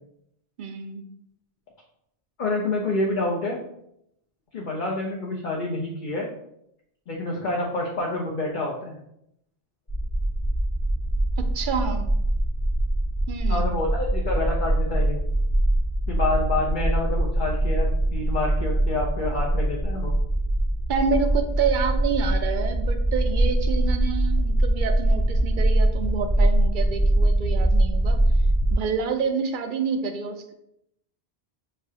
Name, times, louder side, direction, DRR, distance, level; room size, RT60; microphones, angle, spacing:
voice 1, 0.6-1.0 11.4-12.1 13.3-13.7 20.9-28.2 28.7-30.5, right 5 dB, 60° right, 6 dB, 0.6 m, -28 dB
voice 2, 2.4-3.6 4.5-6.3 7.1-9.0 13.5-15.2 16.1-20.1, left 2 dB, 55° left, -2 dB, 0.7 m, -28 dB
sound 1, 9.9-28.7, right 1 dB, 25° left, 0.9 m, -23 dB
6.7 x 2.4 x 2.7 m, 0.76 s
omnidirectional pair, 1.1 m